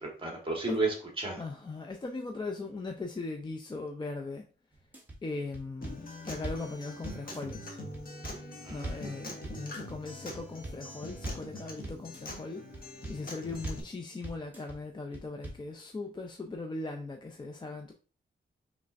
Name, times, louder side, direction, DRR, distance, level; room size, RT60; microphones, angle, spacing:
voice 1, 0.0-1.4 8.6-9.2, right 3 dB, 25° right, 1.4 m, -33 dB
voice 2, 1.4-4.4 5.2-7.8 8.7-12.6 13.1-17.9, left 3 dB, 20° left, 0.4 m, -39 dB
sound 1, 4.7-5.2 5.5-6.7 7.0-7.6 7.9-9.1 9.4-10.0 10.3-10.8 11.1-11.5 11.8-12.4 12.7-13.2 13.5-13.9 14.2-14.8 15.1-15.7, right 1 dB, 10° right, 1.1 m, -41 dB
Acoustic guitar, 5.8-13.8, left 1 dB, 45° left, 1.1 m, -44 dB
5.5 x 3.1 x 2.5 m
wide cardioid pair, 165°, 20 cm